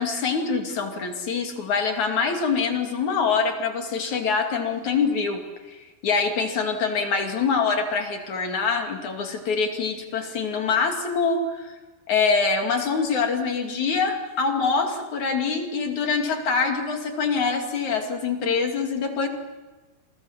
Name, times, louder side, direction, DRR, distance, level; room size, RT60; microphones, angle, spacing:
voice 1, 0.0-5.4 5.7-11.8 12.1-19.3, left 5 dB, 50° left, 4 dB, 3.6 m, -25 dB
29.5 x 22.5 x 7.4 m, 1.2 s
omnidirectional pair, 4.5 m